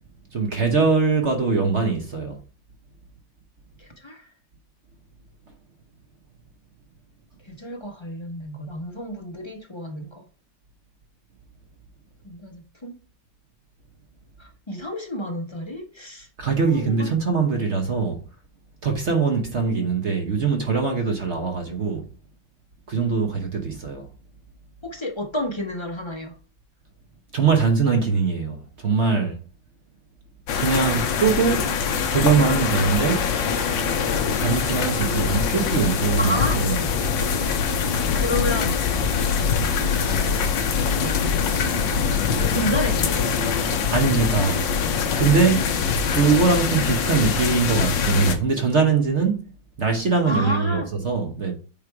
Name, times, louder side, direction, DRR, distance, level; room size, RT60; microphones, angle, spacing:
voice 1, 0.3-2.4 16.4-18.2 18.8-22.0 22.9-24.1 27.3-29.4 30.6-31.7 32.1-33.3 34.4-36.8 43.9-44.6 45.2-45.7 46.1-49.5 49.8-51.5, right 5 dB, 45° right, 1.1 m, -22 dB
voice 2, 3.8-4.3 7.5-10.2 12.2-13.0 14.4-16.3 16.7-17.2 24.8-26.4 36.2-36.6 38.1-39.3 42.5-43.3 50.2-50.9, equal, 25° left, 0.6 m, -31 dB
sound 1, 30.5-48.4, left 6 dB, 70° left, 1.6 m, -23 dB
8.6 x 3.3 x 4.6 m
omnidirectional pair, 2.2 m